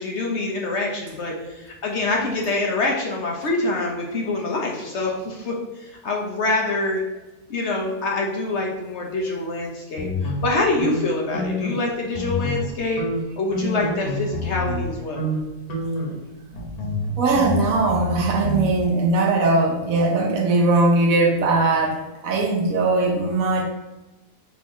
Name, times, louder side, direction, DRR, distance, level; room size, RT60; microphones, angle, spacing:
voice 1, 0.0-7.0 7.5-13.0 13.4-15.2, left 2 dB, 55° left, -1 dB, 1.0 m, -25 dB
sound 1, 10.0-11.8 12.1-12.7 13.0-14.9 15.2-15.4 15.7-18.7, left 1 dB, 90° left, 1.6 m, -28 dB
voice 2, 17.2-23.6, right 2 dB, 70° right, 1 dB, 1.1 m, -20 dB
4.5 x 2.7 x 4.2 m, 1.1 s
omnidirectional pair, 1.6 m